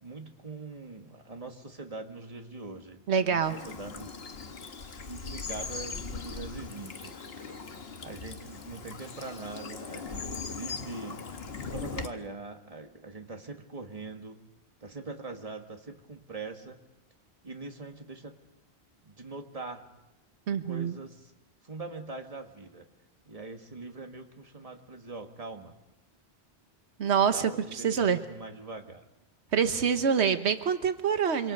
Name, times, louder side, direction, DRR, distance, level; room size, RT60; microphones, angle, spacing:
voice 1, 0.0-4.1 4.9-7.1 8.0-11.2 11.6-14.4 14.8-16.8 17.4-18.4 19.0-19.8 20.6-21.3 21.6-22.9 23.3-25.7 27.3-29.0, right 3 dB, 35° right, 4 dB, 2.0 m, -42 dB
voice 2, 3.1-3.5 20.5-21.0 27.0-28.2 29.5-31.5, right 7 dB, 90° right, 9 dB, 1.3 m, -26 dB
Bird vocalization bird call bird song / Stream, 3.4-12.1, left 5 dB, 65° left, 1.6 m, -40 dB
26.5 x 25.0 x 5.4 m, 0.96 s
omnidirectional pair, 1.1 m